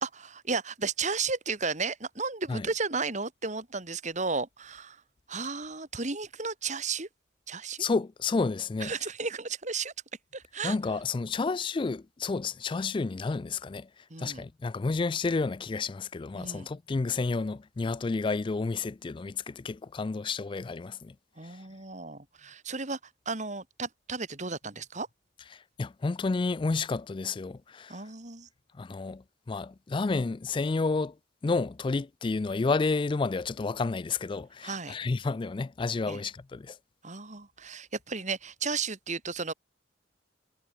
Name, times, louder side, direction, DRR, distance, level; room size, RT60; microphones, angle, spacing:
voice 1, 0.0-5.0 5.3-7.1 7.5-7.8 8.8-9.9 10.3-10.8 14.1-14.4 16.3-16.7 21.4-23.0 23.3-25.1 27.9-28.5 34.6-35.0 36.1-36.2 37.0-39.5, right 4 dB, 40° right, 2.8 m, -34 dB
voice 2, 7.8-8.9 10.6-13.9 14.2-21.1 25.8-27.9 28.8-31.1 31.4-36.8, left 4 dB, 25° left, 0.3 m, -30 dB
head